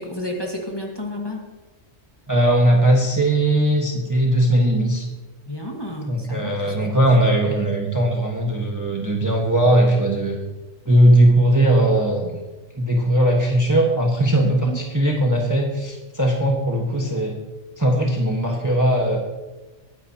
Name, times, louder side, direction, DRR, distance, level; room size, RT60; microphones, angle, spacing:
voice 1, 0.0-1.4 5.5-7.2 14.4-14.8, left 1 dB, 20° left, -1 dB, 1.7 m, -31 dB
voice 2, 2.3-5.1 6.1-10.4 10.8-12.4 12.8-17.4 17.8-19.2, right 1 dB, 15° right, 0 dB, 1.4 m, -19 dB
21.0 x 10.0 x 2.9 m, 1.2 s
omnidirectional pair, 1.4 m